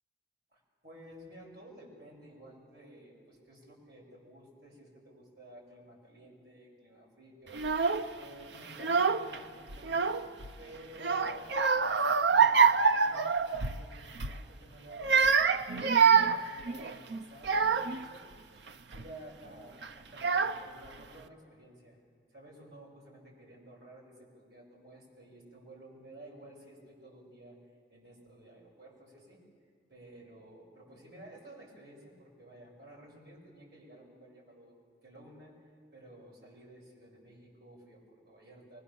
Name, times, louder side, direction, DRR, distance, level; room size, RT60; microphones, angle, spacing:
voice 1, 0.5-10.1 10.6-15.2 15.6-18.6 18.9-22.0 22.3-27.6 27.9-29.4 29.9-34.8 35.0-35.5 35.9-38.8, right 1 dB, 70° right, -3 dB, 6.7 m, -53 dB
Child speech kid speaking / Crying sobbing, 7.5-8.1 8.7-9.4 9.7-10.5 11.0-13.8 14.1-14.4 14.9-18.0 18.7-19.0 19.8-19.9 20.2-20.9, right 5 dB, 90° right, 0.7 m, -26 dB
24.5 x 20.5 x 7.1 m, 2.2 s
head